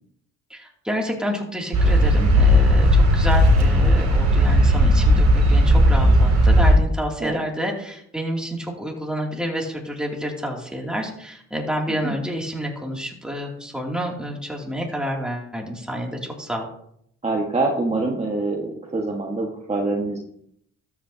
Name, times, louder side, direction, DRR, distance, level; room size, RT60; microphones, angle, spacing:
voice 1, 0.5-16.7, equal, 5° right, -1 dB, 2.8 m, -29 dB
sound 1, 1.7-6.8, equal, 60° right, 3.1 m, -15 dB
voice 2, 17.2-20.2, right 2 dB, 20° right, -1 dB, 1.7 m, -25 dB
13.0 x 8.8 x 2.9 m, 0.70 s
cardioid pair, 90°, 30 cm